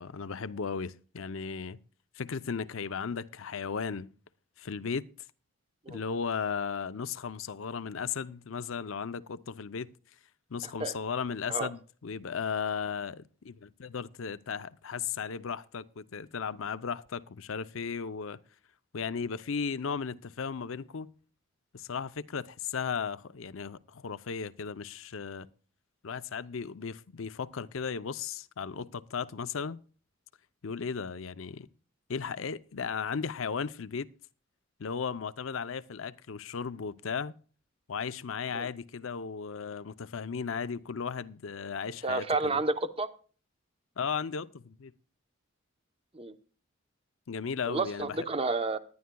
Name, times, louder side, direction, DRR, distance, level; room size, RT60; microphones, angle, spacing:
voice 1, 0.0-1.8 2.2-4.1 4.6-5.1 5.9-9.9 10.5-18.4 18.9-21.1 21.7-25.5 26.0-29.8 30.6-31.7 32.1-34.1 34.8-37.3 37.9-42.6 44.0-44.9 47.3-48.3, left 6 dB, 75° left, 0.6 m, -35 dB
voice 2, 42.0-43.1 46.1-46.3 47.7-48.8, right 3 dB, 25° right, 0.8 m, -30 dB
19.0 x 11.5 x 2.3 m
head